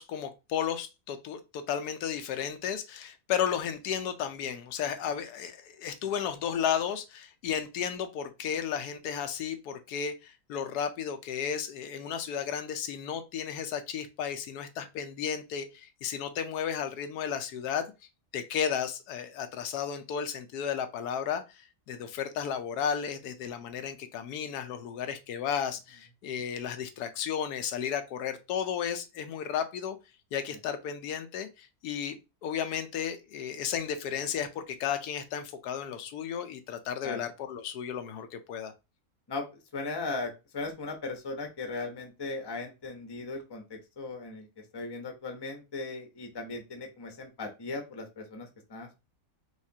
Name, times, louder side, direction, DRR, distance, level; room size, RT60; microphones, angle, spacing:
voice 1, 0.0-17.8 18.3-30.0 30.3-32.2 32.4-38.7, left 8 dB, 90° left, 1.2 m, -33 dB
voice 2, 39.7-44.5 44.7-48.9, left 3 dB, 25° left, 0.6 m, -37 dB
4.9 x 3.2 x 2.7 m
omnidirectional pair, 1.6 m